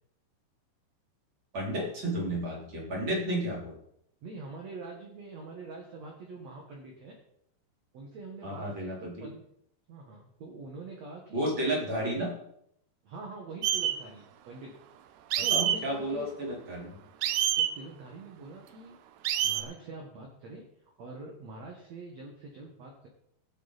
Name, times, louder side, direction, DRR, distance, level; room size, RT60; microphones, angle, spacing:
voice 1, 1.5-3.7 8.4-9.3 11.3-12.3 15.5-17.0, right 1 dB, 30° right, -3 dB, 3.9 m, -32 dB
voice 2, 4.2-7.2 7.9-9.4 9.9-11.5 13.0-14.7 15.4-16.3 17.6-19.0 19.4-20.7 21.0-23.1, right 3 dB, 55° right, 0 dB, 2.1 m, -44 dB
sound 1, 13.6-13.9 15.3-15.8 17.2-17.7 19.2-19.6, right 10 dB, 85° right, 1.9 m, -26 dB
18.5 x 7.9 x 4.1 m, 0.72 s
omnidirectional pair, 4.9 m